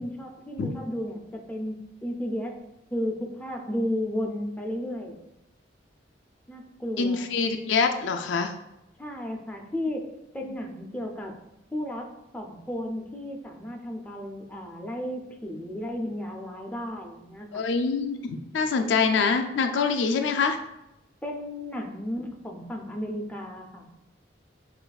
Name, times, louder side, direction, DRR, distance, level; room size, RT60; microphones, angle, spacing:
voice 1, 0.0-1.8 2.0-2.5 2.9-5.2 6.5-7.3 9.0-10.0 10.3-11.3 11.7-12.0 12.3-17.6 21.2-23.9, left 1 dB, 10° left, 1 dB, 0.5 m, -33 dB
voice 2, 7.0-8.5 17.5-20.6, left 5 dB, 70° left, 6 dB, 0.4 m, -25 dB
6.2 x 2.5 x 2.3 m, 0.85 s
head